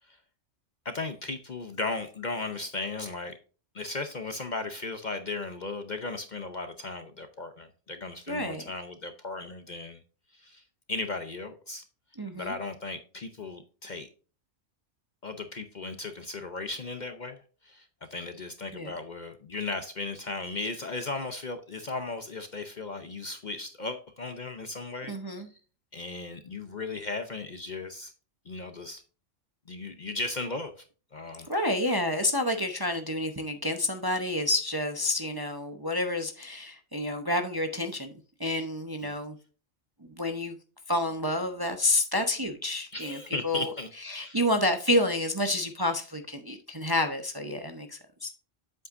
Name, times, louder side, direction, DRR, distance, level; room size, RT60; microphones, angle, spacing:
voice 1, 0.8-3.3 3.7-10.0 10.3-10.6 10.9-11.8 12.3-14.1 15.2-25.4 25.9-28.1 28.5-29.0 29.7-30.8 31.1-31.5 39.0-39.1 42.9-44.4, left 3 dB, 45° left, 8 dB, 0.7 m, -36 dB
voice 2, 8.3-8.7 12.2-12.5 18.7-18.9 25.1-25.5 31.5-38.1 38.4-39.4 40.0-40.6 40.9-43.7 44.0-48.3, left 1 dB, 20° right, 5 dB, 0.7 m, -29 dB
8.3 x 7.7 x 2.5 m, 0.36 s
omnidirectional pair, 1.3 m